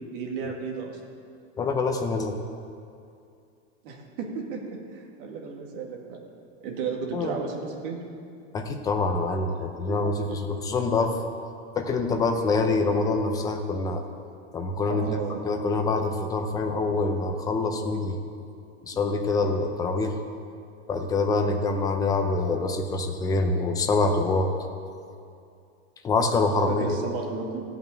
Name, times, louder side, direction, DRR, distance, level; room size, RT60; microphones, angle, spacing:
voice 1, 0.1-1.0 3.8-6.2 6.6-8.0 9.3-10.0 10.3-10.4 14.9-15.4 26.7-27.6, right 5 dB, 50° right, 0 dB, 2.1 m, -34 dB
voice 2, 1.6-2.4 7.1-7.4 8.5-11.2 11.8-14.0 14.5-15.1 15.4-18.2 18.8-20.2 20.9-24.5 26.0-27.0, left 3 dB, 10° left, 5 dB, 0.5 m, -25 dB
14.0 x 5.8 x 9.0 m, 2.4 s
supercardioid pair, 160°, 35 cm